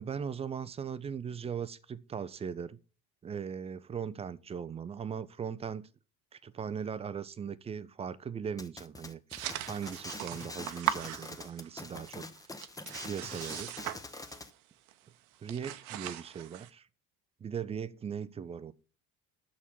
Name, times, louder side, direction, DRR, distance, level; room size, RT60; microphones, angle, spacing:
voice 1, 0.0-2.8 3.2-5.9 6.3-9.2 9.6-12.3 13.0-13.8 15.4-16.9 17.4-18.7, right 7 dB, 15° right, 0.4 m, -39 dB
sound 1, 8.6-14.5, left 2 dB, 10° left, 0.7 m, -45 dB
sound 2, 9.3-11.8 12.1-14.6 14.9-15.1 15.4-16.7, right 13 dB, 65° right, 0.8 m, -39 dB
6.9 x 6.3 x 7.3 m
figure-of-eight pair, 60°, 46 cm